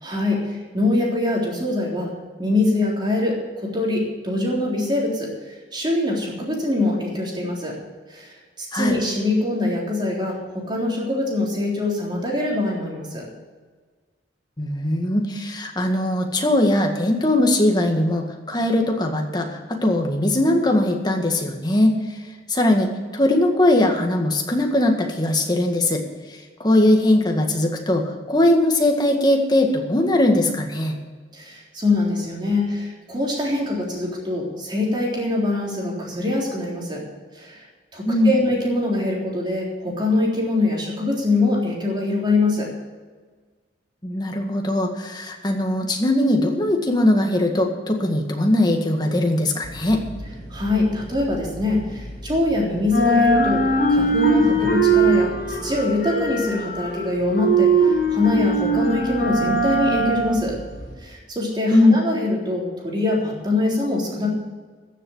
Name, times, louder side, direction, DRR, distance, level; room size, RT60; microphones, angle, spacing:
voice 1, 0.0-2.1 2.4-5.3 5.7-7.8 8.1-8.3 8.6-13.3 31.3-37.0 37.4-37.6 37.9-42.7 50.5-53.6 53.9-60.6 61.0-64.3, left 2 dB, 25° right, -2 dB, 3.6 m, -23 dB
voice 2, 14.6-22.0 22.5-26.0 26.6-30.9 38.1-38.3 44.0-50.0 61.7-62.0, left 1 dB, 25° left, 3 dB, 1.8 m, -20 dB
sound 1, 49.6-52.5 52.8-60.9, right 2 dB, 55° left, 5.1 m, -21 dB
14.5 x 7.4 x 7.9 m, 1.5 s
head